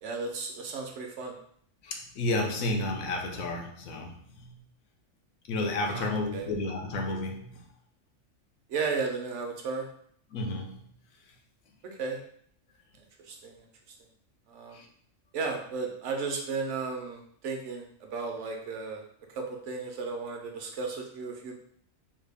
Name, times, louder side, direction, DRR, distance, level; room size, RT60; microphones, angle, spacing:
voice 1, 0.0-1.4 5.8-6.5 8.7-9.9 12.0-12.2 13.3-13.7 14.5-14.8 15.3-19.0 19.3-21.6, right 4 dB, 70° right, 2 dB, 0.9 m, -34 dB
voice 2, 1.8-4.5 5.5-7.6 10.3-10.8 14.7-14.9, left 2 dB, 90° left, 2 dB, 1.1 m, -32 dB
3.4 x 2.2 x 3.3 m, 0.63 s
omnidirectional pair, 1.4 m